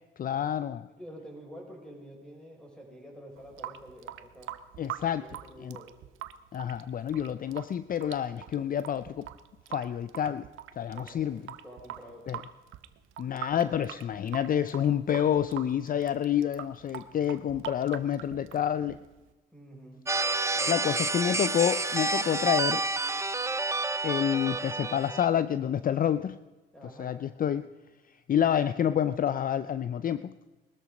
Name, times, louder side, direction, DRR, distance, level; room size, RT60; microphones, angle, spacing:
voice 1, 0.2-0.9 4.8-5.2 5.6-5.8 6.5-9.3 9.7-10.5 10.8-11.4 12.3-12.4 13.2-19.0 20.7-22.8 24.0-26.4 27.0-27.7 28.3-30.3, left 9 dB, 45° left, 14 dB, 0.5 m, -28 dB
voice 2, 1.0-4.5 5.0-5.9 10.9-11.4 11.6-12.4 19.5-20.1 20.5-21.0 26.7-27.3, equal, 5° left, 0 dB, 6.2 m, -48 dB
Water tap faucet / Sink (filling or washing) / Drip, 3.4-19.3, right 12 dB, 80° right, 0.8 m, -44 dB
sound 1, 20.1-25.3, right 3 dB, 15° right, 0.7 m, -29 dB
21.0 x 13.0 x 5.2 m, 1.2 s
cardioid pair, 90°, 20 cm